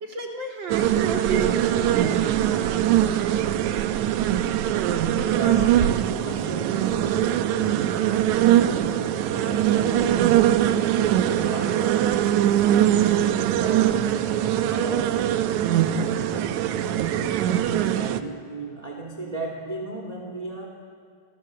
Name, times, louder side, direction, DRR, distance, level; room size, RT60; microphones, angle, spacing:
voice 1, 0.0-2.7, right 4 dB, 35° right, 1 dB, 2.9 m, -32 dB
sound 1, 0.7-18.2, right 11 dB, 70° right, 2.0 m, -22 dB
voice 2, 5.3-8.0 8.4-10.6 10.9-12.2 12.8-13.9 14.2-17.5 17.9-20.7, right 2 dB, 15° right, 1 dB, 2.3 m, -36 dB
29.5 x 20.5 x 7.6 m, 2.1 s
omnidirectional pair, 3.9 m